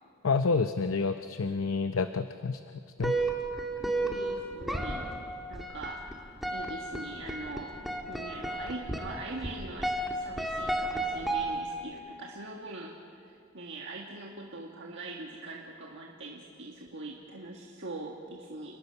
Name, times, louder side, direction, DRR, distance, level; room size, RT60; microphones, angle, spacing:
voice 1, 0.2-2.6 3.0-3.1, left 4 dB, 80° left, 9 dB, 0.7 m, -28 dB
sound 1, 3.0-12.0, right 2 dB, ahead, 1.7 m, -33 dB
voice 2, 3.8-5.1 5.5-6.1 6.5-7.8 8.1-18.8, right 2 dB, 60° right, -1 dB, 1.7 m, -42 dB
29.5 x 19.5 x 5.7 m, 2.3 s
head